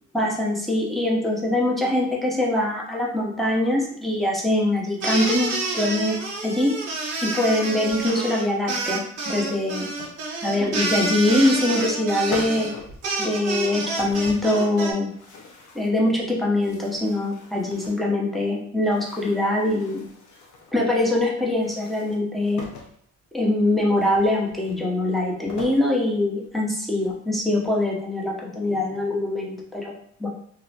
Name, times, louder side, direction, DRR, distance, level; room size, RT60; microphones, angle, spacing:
voice 1, 0.1-6.7 7.2-9.0 9.3-9.9 10.4-12.7 13.2-15.1 15.7-20.0 20.7-22.6 23.3-29.9 30.2-30.3, left 1 dB, ahead, -3 dB, 0.7 m, -23 dB
sound 1, 5.0-14.9, right 3 dB, 55° right, 0.9 m, -28 dB
sound 2, 9.7-10.6 11.6-12.0 12.3-13.0 13.9-14.8 15.1-16.0 16.5-18.1 18.8-20.8 21.5-23.0 24.0-25.9 26.4-26.5 27.0-27.8, left 3 dB, 75° left, 0.6 m, -42 dB
2.9 x 2.0 x 2.8 m, 0.66 s
cardioid pair, 90°, 30 cm